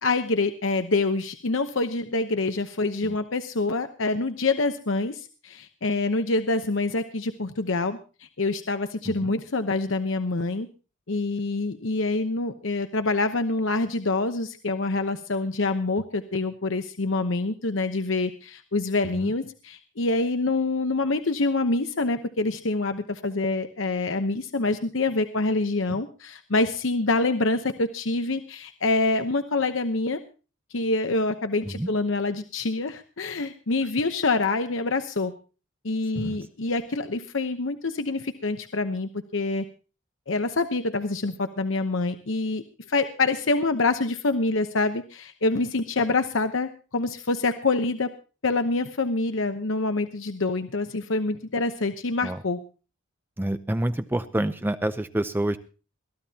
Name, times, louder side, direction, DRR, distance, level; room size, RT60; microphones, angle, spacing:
voice 1, 0.0-10.7 11.1-30.2 30.7-35.3 35.8-39.6 40.3-42.6 42.9-48.1 48.4-52.6, left 3 dB, 70° left, 8 dB, 0.9 m, -26 dB
voice 2, 53.4-55.6, right 1 dB, 10° right, 10 dB, 0.6 m, -28 dB
22.0 x 15.0 x 2.9 m, 0.34 s
head